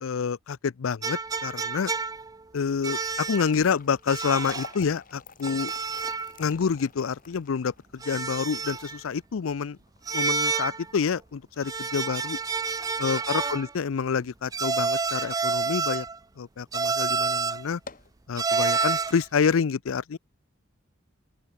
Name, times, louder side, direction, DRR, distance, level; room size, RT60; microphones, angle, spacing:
voice 1, 0.0-1.9 2.5-5.7 6.4-9.8 10.1-12.4 13.0-16.1 16.4-17.8 18.3-20.2, left 6 dB, 75° left, 0.5 m, -28 dB
sound 1, 1.0-2.4 2.8-3.5 4.1-4.8 5.4-6.3 6.6-6.7 8.0-9.0 10.1-10.9 11.6-13.7 14.5-16.2 16.7-17.7 18.4-19.2, right 4 dB, 20° right, 0.4 m, -29 dB
sound 2, 3.1-15.4 15.8-15.9 16.6-16.8 17.1-17.2 17.7-18.2, left 5 dB, 45° left, 2.2 m, -48 dB
open air
head